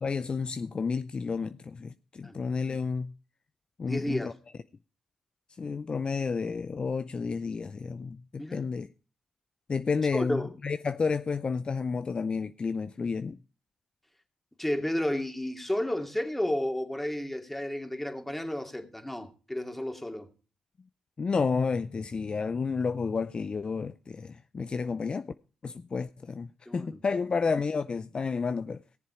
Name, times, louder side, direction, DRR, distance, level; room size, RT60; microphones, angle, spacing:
voice 1, 0.0-3.1 3.8-4.3 5.6-8.9 9.7-13.4 21.2-25.3 25.6-28.8, left 5 dB, 45° left, 0.5 m, -31 dB
voice 2, 3.8-4.3 8.4-8.7 10.1-10.5 14.6-20.3 26.7-27.0, left 1 dB, 10° left, 2.5 m, -32 dB
16.5 x 7.4 x 4.9 m
supercardioid pair, 50°, 2 cm